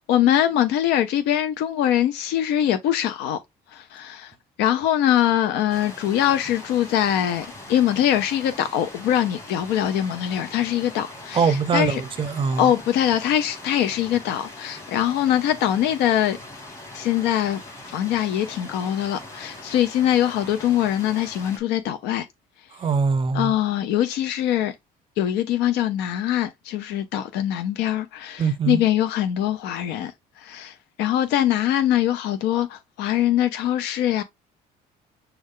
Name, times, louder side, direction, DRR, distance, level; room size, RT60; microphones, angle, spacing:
voice 1, 0.0-3.4 3.7-12.0 12.6-16.4 16.9-17.6 17.9-22.3 23.3-24.7 25.2-34.2, left 11 dB, 90° left, 0.5 m, -23 dB
Stream, 5.7-21.6, left 1 dB, 15° left, 2.2 m, -41 dB
voice 2, 11.3-12.7 22.7-23.5 28.4-28.8, right 5 dB, 30° right, 0.5 m, -22 dB
6.3 x 2.3 x 3.6 m
cardioid pair, 110°, 17 cm